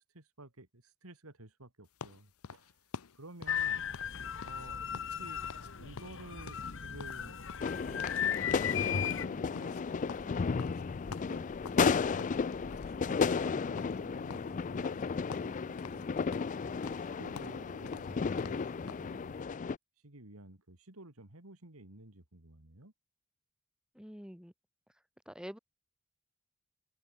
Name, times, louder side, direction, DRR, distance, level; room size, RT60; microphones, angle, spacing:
voice 1, 0.1-2.8 3.1-3.9 4.4-5.4 5.8-7.4 7.9-16.2 16.6-19.4 20.0-22.9, right 2 dB, 80° right, 3.0 m, -53 dB
sound 1, 2.0-5.2 5.4-5.7 6.0-8.3 8.5-8.8 9.0-11.9 12.2-13.0 13.2-13.5 13.8-15.0 15.3-16.1 16.3-19.1, left 5 dB, 85° left, 0.7 m, -48 dB
sound 2, 3.5-9.3, left 8 dB, 60° left, 1.4 m, -36 dB
sound 3, 7.6-19.8, left 5 dB, 35° left, 0.4 m, -33 dB
voice 2, 23.9-24.5 25.3-25.6, equal, 5° right, 3.8 m, -46 dB
head